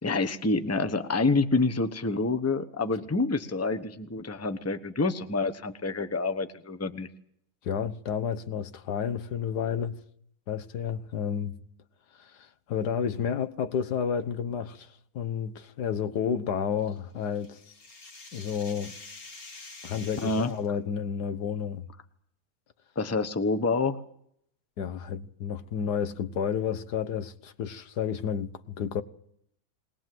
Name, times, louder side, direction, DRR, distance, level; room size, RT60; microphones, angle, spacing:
voice 1, 0.0-7.1 20.2-20.5 23.0-24.0, left 3 dB, 10° left, 0.9 m, -27 dB
voice 2, 7.6-10.0 10.5-11.6 12.2-17.6 18.3-19.0 19.8-21.9 24.8-29.0, left 7 dB, 85° left, 1.7 m, -31 dB
sound 1, 16.8-20.7, left 3 dB, 65° left, 2.5 m, -47 dB
21.0 x 20.5 x 7.7 m
omnidirectional pair, 1.7 m